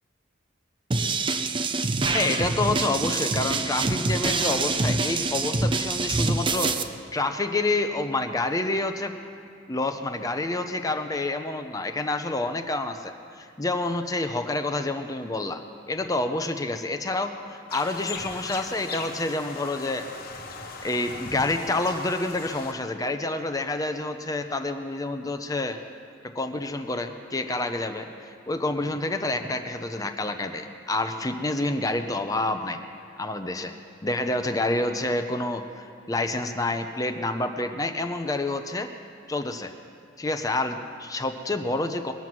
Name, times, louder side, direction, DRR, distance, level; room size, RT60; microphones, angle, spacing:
sound 1, 0.9-6.8, right 3 dB, 25° right, 0.5 m, -25 dB
voice 1, 2.1-6.7 7.1-9.2 9.7-15.6 15.9-20.4 20.8-25.8 26.3-32.8 33.2-33.7 34.0-38.9 39.3-39.7 40.2-42.1, left 2 dB, 20° left, 6 dB, 0.6 m, -28 dB
sound 2, 17.7-22.7, left 4 dB, 50° left, 1.2 m, -38 dB
22.0 x 7.7 x 6.1 m, 2.5 s
head